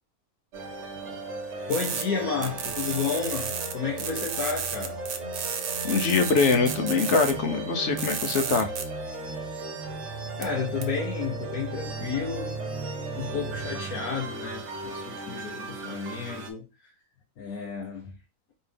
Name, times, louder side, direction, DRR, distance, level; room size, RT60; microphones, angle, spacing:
sound 1, 0.5-16.5, right 3 dB, 60° right, 1.1 m, -36 dB
voice 1, 1.7-5.0 10.4-12.6 13.1-16.9 17.4-18.2, left 6 dB, 80° left, 1.4 m, -32 dB
sound 2, 1.7-2.0 2.4-3.7 4.0-7.3 8.0-8.8 10.4-10.5 10.8-10.9, right 7 dB, 80° right, 1.2 m, -32 dB
voice 2, 5.8-8.7, left 4 dB, 60° left, 1.0 m, -23 dB
4.4 x 3.2 x 3.4 m
omnidirectional pair, 1.5 m